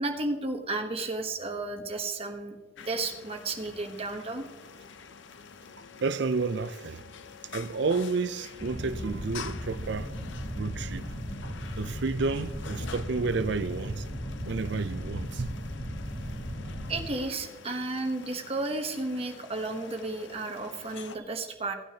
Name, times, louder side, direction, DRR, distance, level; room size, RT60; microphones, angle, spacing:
voice 1, 0.0-4.4 16.9-21.7, right 2 dB, 30° right, 1.0 m, -33 dB
sound 1, 2.8-21.2, left 6 dB, 65° left, 0.5 m, -47 dB
voice 2, 6.0-7.1 7.5-10.1 10.6-11.0 11.8-14.1 14.4-15.5, right 4 dB, 55° right, 0.5 m, -30 dB
sound 2, 8.6-17.1, equal, 35° left, 3.0 m, -37 dB
16.5 x 9.0 x 2.8 m
head